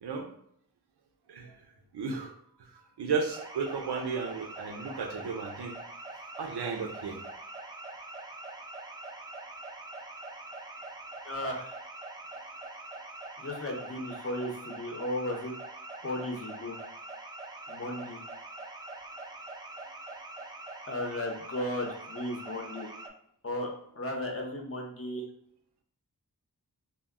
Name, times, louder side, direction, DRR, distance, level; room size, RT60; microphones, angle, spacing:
voice 1, 1.9-2.3 2.6-2.7 3.0-5.7 6.4-7.2, right 5 dB, 85° right, 4 dB, 0.6 m, -34 dB
sound 1, 3.3-23.1, right 2 dB, 10° right, 0.3 m, -44 dB
voice 2, 11.2-11.7 13.4-15.5 16.0-16.8 17.7-18.2 20.9-22.9 23.4-25.2, left 1 dB, 35° left, 1 dB, 0.7 m, -35 dB
2.2 x 2.1 x 3.5 m, 0.70 s
wide cardioid pair, 50°, 39 cm